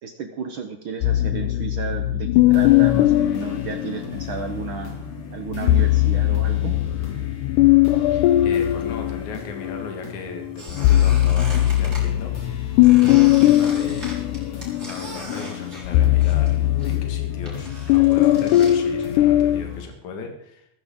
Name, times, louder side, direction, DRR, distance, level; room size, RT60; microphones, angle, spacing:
voice 1, 0.0-4.9 5.3-6.7, right 6 dB, 75° right, 5 dB, 1.1 m, -33 dB
sound 1, 1.0-4.5 5.5-9.9 10.4-19.6, left 14 dB, 85° left, 2.1 m, -19 dB
sound 2, 2.3-19.8, left 7 dB, 45° left, 2.9 m, -36 dB
voice 2, 8.1-14.1 14.8-20.7, left 4 dB, 65° left, 3 dB, 3.1 m, -37 dB
Squeak, 10.6-12.0 12.8-16.5 16.8-18.8, right 2 dB, 25° right, 4.6 m, -39 dB
15.0 x 14.5 x 3.7 m, 0.74 s
omnidirectional pair, 3.7 m